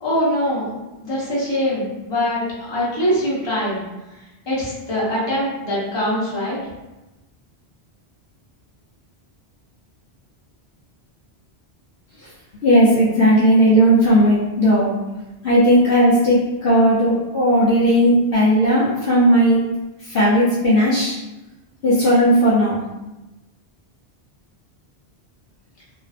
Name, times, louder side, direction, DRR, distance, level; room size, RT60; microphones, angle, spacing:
voice 1, 0.0-0.6 1.0-2.4 2.7-3.8 4.5-6.6, equal, 25° left, -8 dB, 0.8 m, -22 dB
voice 2, 12.6-14.9 15.4-19.6 20.0-21.1 21.8-22.8, equal, 65° left, -8 dB, 0.8 m, -15 dB
2.5 x 2.3 x 2.3 m, 1.0 s
omnidirectional pair, 1.1 m